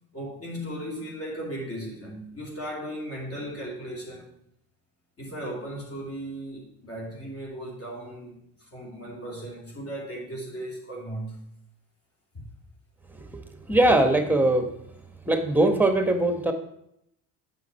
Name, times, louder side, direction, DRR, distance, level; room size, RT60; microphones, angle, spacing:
voice 1, 0.1-4.3 5.2-11.4 12.3-12.5, right 1 dB, 30° left, 2.9 m, -37 dB
voice 2, 13.1-13.4 13.7-14.7 15.2-16.5, right 2 dB, 5° right, 1.5 m, -21 dB
8.1 x 6.8 x 4.5 m
hypercardioid pair, 55°, 45 cm